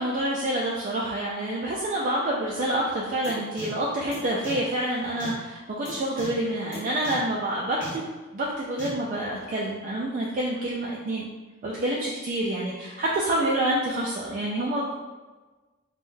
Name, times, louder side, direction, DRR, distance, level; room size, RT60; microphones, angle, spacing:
voice 1, 0.0-8.1 8.3-11.3 11.6-14.9, right 1 dB, 35° right, -4 dB, 0.3 m, -27 dB
sound 1, 3.2-3.3 3.6-3.7 4.1-4.2 4.4-4.5 5.2-5.3 5.8-5.9 6.2-6.3 6.7-6.8 7.0-7.1 7.8-7.9 8.8-8.9, right 1 dB, 55° left, 1.3 m, -38 dB
3.6 x 2.2 x 2.6 m, 1.2 s
head